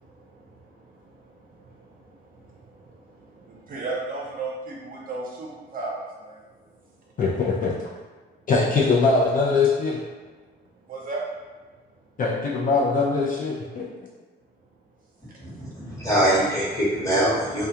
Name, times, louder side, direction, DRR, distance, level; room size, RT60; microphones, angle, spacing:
voice 1, 0.0-6.4 10.9-11.2, right 3 dB, 45° right, -3 dB, 0.6 m, -36 dB
voice 2, 7.2-7.7 8.5-10.0 12.2-13.9, left 4 dB, 45° left, -4 dB, 0.5 m, -22 dB
voice 3, 15.4-17.7, right 1 dB, 15° left, -8 dB, 1.2 m, -23 dB
2.3 x 2.3 x 2.8 m, 1.3 s
cardioid pair, 90°, 20 cm